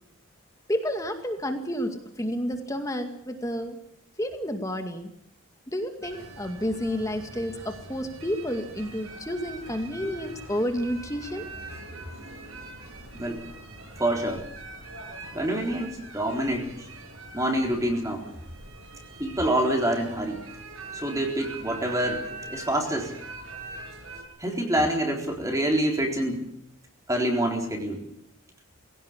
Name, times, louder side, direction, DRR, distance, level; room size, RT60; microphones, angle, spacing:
voice 1, 0.7-3.8 4.2-5.1 5.7-11.5, equal, 15° left, 6 dB, 2.2 m, -30 dB
sound 1, 6.0-24.2, right 3 dB, 80° right, 7.2 m, -42 dB
voice 2, 14.0-14.4 15.3-16.9 17.3-18.2 19.2-20.5 20.9-23.1 24.4-26.4 27.1-28.0, right 1 dB, 15° right, 1 dB, 4.0 m, -26 dB
22.5 x 17.0 x 8.7 m, 0.72 s
head